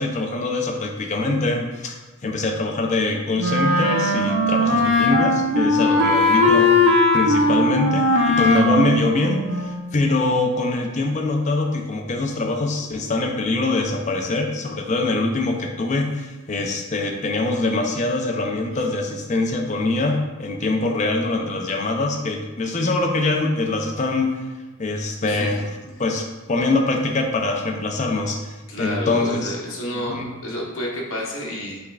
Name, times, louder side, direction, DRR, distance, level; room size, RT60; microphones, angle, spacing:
voice 1, 0.0-24.5 24.8-25.6 26.0-29.5 29.9-30.4, left 2 dB, 35° left, 2 dB, 0.4 m, -23 dB
Wind instrument woodwind instrument, 3.4-10.0, left 2 dB, 55° right, 0.6 m, -19 dB
voice 2, 5.7-6.6 7.4-7.5 18.7-18.8 25.3-25.6 28.7-31.8, left 1 dB, 70° left, -3 dB, 1.0 m, -31 dB
5.7 x 3.2 x 2.3 m, 1.2 s
head